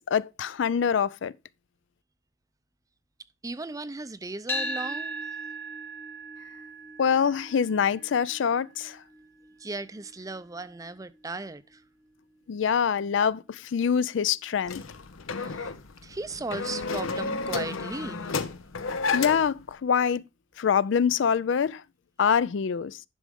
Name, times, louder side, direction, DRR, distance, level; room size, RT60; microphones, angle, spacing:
voice 1, 0.0-1.3 7.0-9.0 12.5-14.8 19.1-20.2 20.6-21.8 22.2-23.0, left 7 dB, 65° left, 0.4 m, -25 dB
voice 2, 3.4-5.2 9.6-11.8 15.3-15.7 16.0-18.4, right 2 dB, 15° right, 0.5 m, -37 dB
sound 1, 4.5-12.7, right 1 dB, 10° left, 0.9 m, -39 dB
sound 2, 14.7-19.6, left 4 dB, 90° left, 0.8 m, -32 dB
11.0 x 6.2 x 3.6 m
head